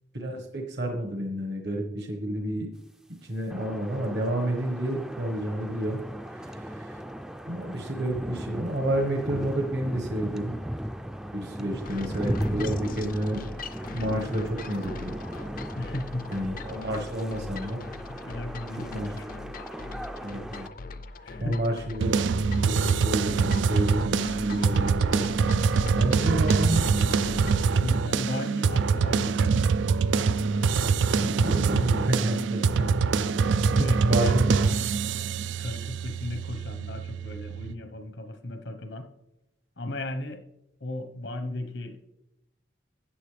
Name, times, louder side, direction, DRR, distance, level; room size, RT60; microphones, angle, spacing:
voice 1, 0.1-2.7 3.2-6.0 6.3-7.0 7.5-10.5 11.3-13.4 13.9-15.1 16.3-17.8 18.9-19.4 20.2-20.7 21.4-22.2 22.7-25.3 25.8-27.5 31.1-34.8, right 1 dB, 65° right, 3 dB, 1.4 m, -30 dB
sound 1, 3.5-20.7, equal, 5° right, 0.4 m, -37 dB
sound 2, 11.8-27.7, left 3 dB, 50° left, 0.5 m, -41 dB
voice 2, 15.8-16.3 18.1-19.3 21.2-21.6 27.7-29.8 33.7-34.5 35.6-39.1 39.8-40.4 40.8-42.0, left 1 dB, 75° left, 7 dB, 1.1 m, -36 dB
sound 3, 22.0-37.7, right 5 dB, 85° right, 0.4 m, -24 dB
13.0 x 8.9 x 3.3 m, 0.89 s
head